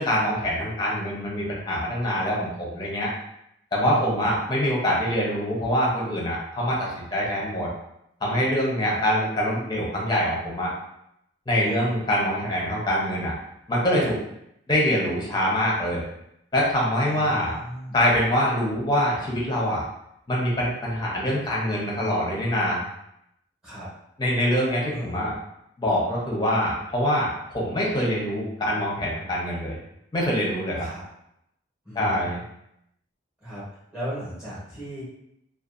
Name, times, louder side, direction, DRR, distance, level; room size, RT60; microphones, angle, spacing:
voice 1, 0.0-3.1 3.7-7.7 8.2-10.7 11.5-13.3 13.7-14.2 14.7-16.0 16.5-17.6 17.9-19.8 20.3-22.8 24.2-25.3 25.8-29.8 30.1-30.9 31.9-32.4, equal, 25° left, -4 dB, 0.7 m, -24 dB
voice 2, 3.7-4.4 8.8-9.0 11.6-11.9 17.1-18.0 23.6-23.9 24.9-25.2 30.7-31.0 31.8-32.2 33.4-33.6 33.9-35.0, equal, ahead, -11 dB, 0.9 m, -37 dB
2.5 x 2.3 x 2.4 m, 0.79 s
head